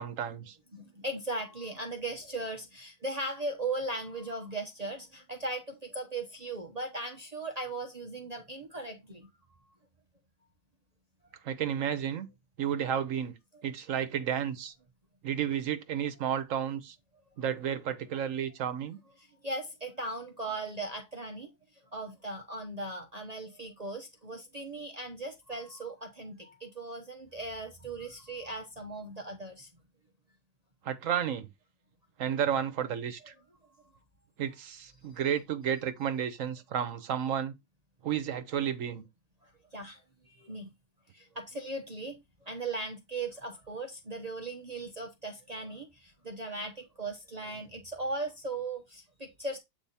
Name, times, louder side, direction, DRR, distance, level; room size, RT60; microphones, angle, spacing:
voice 1, 0.0-0.6 11.4-12.3 12.6-13.4 13.6-14.7 15.2-16.9 17.4-19.0 30.8-31.5 32.2-33.3 34.4-37.5 38.0-39.0, right 9 dB, 75° right, 1.2 m, -32 dB
voice 2, 0.7-9.3 19.2-21.5 21.9-29.7 39.7-40.0 40.3-40.7 41.1-42.2 42.4-49.6, right 2 dB, 30° right, 1.0 m, -38 dB
8.2 x 3.5 x 4.2 m
omnidirectional pair, 1.4 m